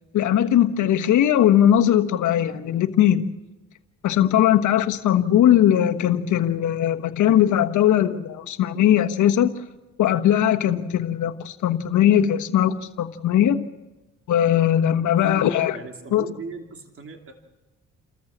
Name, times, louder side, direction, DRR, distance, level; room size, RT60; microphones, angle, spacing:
voice 1, 0.1-3.2 4.0-9.5 10.0-13.6 14.3-15.8 16.1-16.3, left 11 dB, 75° left, 8 dB, 1.3 m, -19 dB
voice 2, 15.7-17.3, right 4 dB, 45° right, 4 dB, 3.1 m, -38 dB
29.0 x 14.0 x 7.3 m, 1.1 s
cardioid pair, 90°, 30 cm